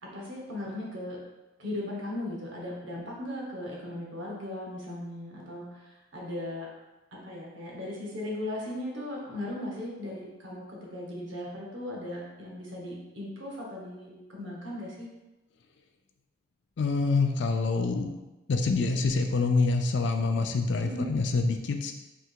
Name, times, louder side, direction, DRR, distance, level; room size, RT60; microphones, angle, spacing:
voice 1, 0.1-1.2 1.6-6.7 7.2-15.1 20.8-21.2, left 1 dB, 70° right, -3 dB, 1.1 m, -37 dB
voice 2, 16.8-18.2 18.5-21.9, left 3 dB, 60° left, 5 dB, 0.4 m, -26 dB
3.4 x 2.8 x 4.5 m, 1.0 s
head